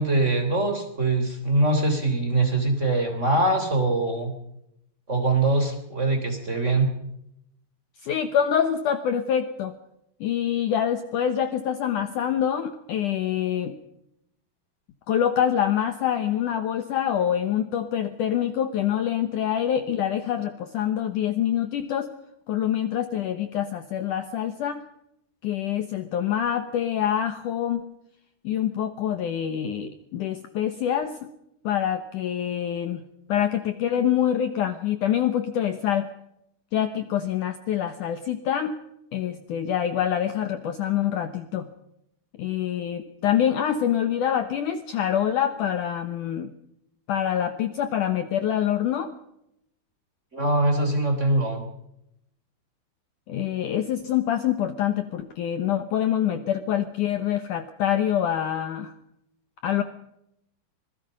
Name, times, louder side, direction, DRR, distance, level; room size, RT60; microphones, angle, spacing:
voice 1, 0.0-4.3 5.1-6.9 50.3-51.6, right 2 dB, 20° right, 5 dB, 3.0 m, -23 dB
voice 2, 8.0-9.7 10.2-13.8 15.1-22.1 22.5-24.8 25.4-27.9 28.4-31.3 31.6-33.0 33.3-36.1 36.7-38.8 39.1-41.7 42.4-46.5 47.1-49.1 53.3-58.9 59.6-59.8, left 10 dB, 70° left, 9 dB, 2.1 m, -25 dB
25.5 x 21.0 x 5.3 m, 0.79 s
omnidirectional pair, 4.6 m